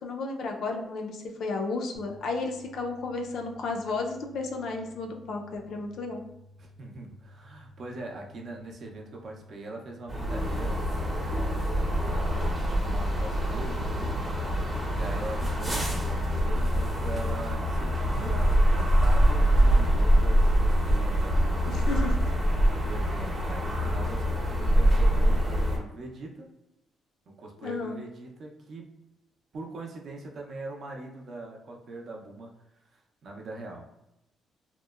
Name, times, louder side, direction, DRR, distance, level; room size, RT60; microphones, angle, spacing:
voice 1, 0.0-6.2 21.7-22.1 27.6-28.0, left 3 dB, 70° left, 2 dB, 0.4 m, -33 dB
sound 1, 2.0-12.0, left 1 dB, 15° left, 0.5 m, -54 dB
voice 2, 6.6-10.8 11.2-14.2 14.9-21.8 22.8-26.5 27.3-28.9 29.5-32.5 32.9-33.8, right 2 dB, 55° right, 1 dB, 0.5 m, -41 dB
sound 2, 10.1-25.8, equal, 20° right, 0.7 m, -24 dB
2.8 x 2.0 x 2.3 m, 0.87 s
cardioid pair, 90°, 0 cm